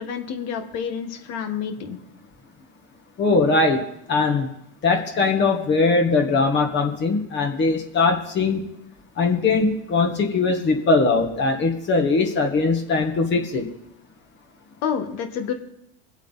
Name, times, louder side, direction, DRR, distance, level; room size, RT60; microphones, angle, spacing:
voice 1, 0.0-2.0 14.8-15.5, left 7 dB, 60° left, 6 dB, 1.6 m, -28 dB
voice 2, 3.2-4.5 4.8-8.6 9.2-13.7, left 3 dB, 35° left, 2 dB, 1.7 m, -21 dB
22.5 x 8.2 x 4.1 m, 0.80 s
supercardioid pair, 100°, 30 cm